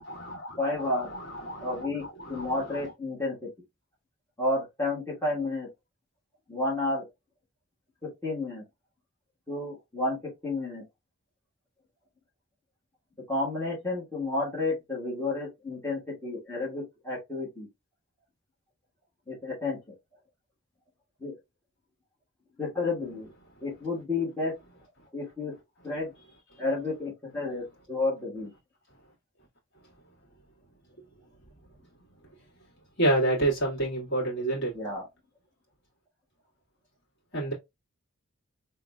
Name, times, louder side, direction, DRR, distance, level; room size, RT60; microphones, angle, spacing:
voice 1, 0.0-2.9 33.0-34.7 37.3-37.5, right 1 dB, 60° left, 2.2 m, -29 dB
voice 2, 0.6-1.1 1.6-2.0 2.3-3.5 4.4-5.7 6.5-7.0 8.0-8.6 9.5-10.8 13.3-17.7 19.3-19.8 21.2-21.3 22.6-23.3 23.6-24.5 25.1-25.5 25.8-26.1 26.6-28.5 34.7-35.0, left 2 dB, 15° left, 1.5 m, -31 dB
3.9 x 3.4 x 2.4 m
head